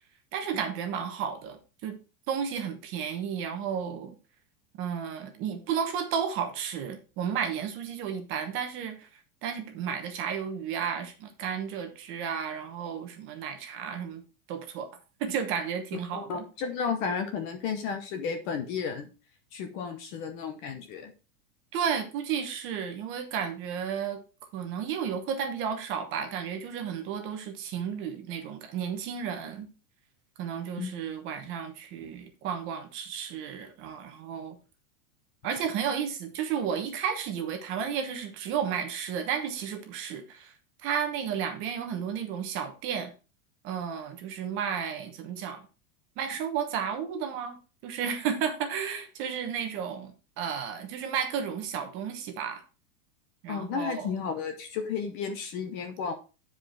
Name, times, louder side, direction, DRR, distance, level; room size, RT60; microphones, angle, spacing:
voice 1, 0.3-2.0 2.3-4.1 4.8-9.1 9.4-14.2 14.5-14.9 15.2-16.4 21.7-24.2 24.5-29.7 30.4-34.6 35.4-40.5 40.8-43.1 43.6-45.6 46.2-47.6 47.8-50.1 50.4-52.6 53.4-54.1, right 7 dB, 25° right, 5 dB, 1.1 m, -33 dB
voice 2, 15.9-19.1 19.5-21.1 30.8-30.9 53.5-56.1, left 6 dB, 30° left, 7 dB, 0.8 m, -33 dB
9.9 x 4.9 x 4.6 m, 0.33 s
supercardioid pair, 175°, 45 cm